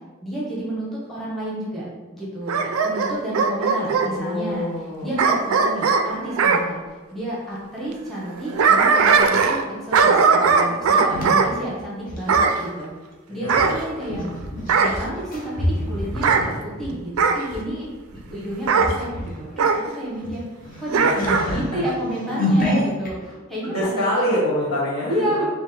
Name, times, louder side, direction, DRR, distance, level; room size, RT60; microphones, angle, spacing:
voice 1, 0.2-1.9 2.1-4.7 5.0-6.8 7.1-12.9 13.3-14.2 14.8-17.9 18.3-20.4 20.8-21.2 21.4-24.1 25.1-25.4, right 1 dB, ahead, -7 dB, 0.9 m, -30 dB
Bark / Growling, 2.5-4.1 5.2-6.6 8.3-9.6 9.9-11.5 12.3-12.6 13.5-14.3 14.7-15.0 16.1-16.5 17.2-17.4 18.7-18.9 19.6-19.8 20.9-21.5 21.8-21.9, right 5 dB, 85° right, 0.4 m, -18 dB
voice 2, 4.0-5.1 13.3-13.7 20.9-21.8 23.2-23.3 23.6-25.4, equal, 70° left, -7 dB, 1.4 m, -26 dB
sound 1, 10.5-12.4 13.4-17.6 18.1-18.4 18.7-19.4 19.7-19.8 20.2-23.1, left 1 dB, 45° left, 0.7 m, -28 dB
5.2 x 2.1 x 3.2 m, 1.3 s
head